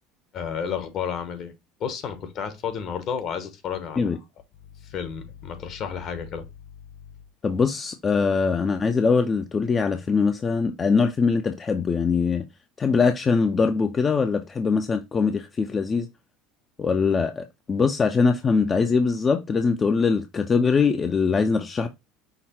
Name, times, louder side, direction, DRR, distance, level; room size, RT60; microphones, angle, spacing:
voice 1, 0.3-1.5 1.8-4.2 4.8-6.5, left 7 dB, 50° left, 1.0 m, -31 dB
voice 2, 7.4-12.4 12.8-16.1 16.8-21.9, left 5 dB, 30° left, 0.5 m, -22 dB
5.8 x 2.1 x 4.2 m
supercardioid pair, 100°, 0 cm